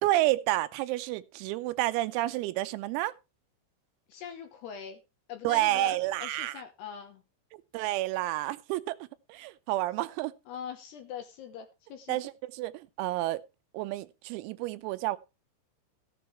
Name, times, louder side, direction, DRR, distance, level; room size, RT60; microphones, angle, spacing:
voice 1, 0.0-3.1 5.5-6.6 7.5-9.0 9.3-10.3 12.1-13.4 13.7-15.2, right 17 dB, 90° right, 3.5 m, -30 dB
voice 2, 4.1-5.0 5.3-7.2 10.5-12.2, left 8 dB, 70° left, 2.7 m, -42 dB
15.0 x 9.8 x 3.2 m
omnidirectional pair, 6.0 m